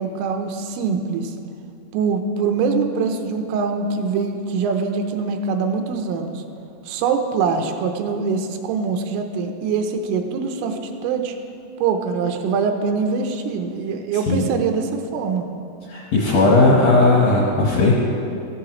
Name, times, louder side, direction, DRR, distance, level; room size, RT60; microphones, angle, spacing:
voice 1, 0.0-1.3 1.9-6.4 6.9-11.3 11.8-15.5, right 5 dB, 85° right, 5 dB, 3.3 m, -23 dB
voice 2, 15.9-17.9, left 2 dB, 75° left, -3 dB, 2.1 m, -16 dB
14.5 x 13.5 x 3.1 m, 2.6 s
omnidirectional pair, 5.7 m